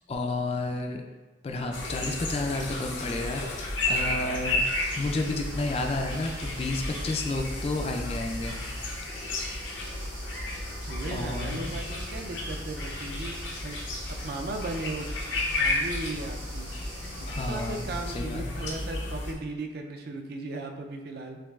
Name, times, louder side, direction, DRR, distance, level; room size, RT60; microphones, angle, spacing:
voice 1, 0.1-1.0 1.4-4.6 5.0-8.6 11.1-11.7 17.3-18.7, left 2 dB, 30° left, 3 dB, 0.3 m, -31 dB
sound 1, 1.7-19.3, left 2 dB, 75° left, 0.7 m, -33 dB
sound 2, 4.6-18.1, right 2 dB, 85° right, 1.2 m, -47 dB
voice 2, 10.9-13.4 13.6-13.9 14.2-15.1 15.6-16.7 17.5-21.4, right 2 dB, 55° right, 3 dB, 0.4 m, -36 dB
5.8 x 2.3 x 2.3 m, 1.2 s
head